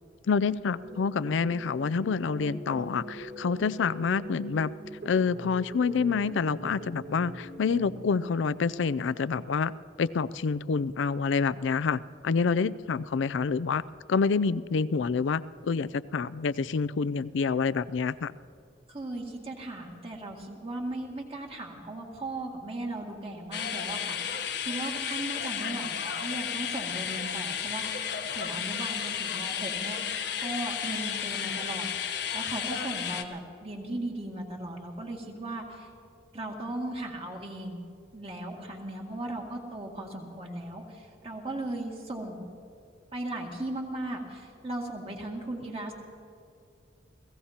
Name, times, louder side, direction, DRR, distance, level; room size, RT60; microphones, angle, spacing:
voice 1, 0.3-4.7 5.0-9.7 10.0-13.8 14.1-18.3, left 5 dB, 80° left, 16 dB, 0.4 m, -27 dB
sound 1, 0.8-8.3, right 1 dB, 65° right, 1.8 m, -43 dB
voice 2, 18.9-28.1 28.3-30.0 30.4-31.9 32.3-35.9 36.3-37.8 38.1-42.5 43.1-45.9, right 1 dB, 30° right, 0 dB, 2.0 m, -37 dB
sound 2, 23.5-33.2, left 8 dB, 60° left, 0.9 m, -33 dB
29.5 x 17.0 x 2.9 m, 2.4 s
head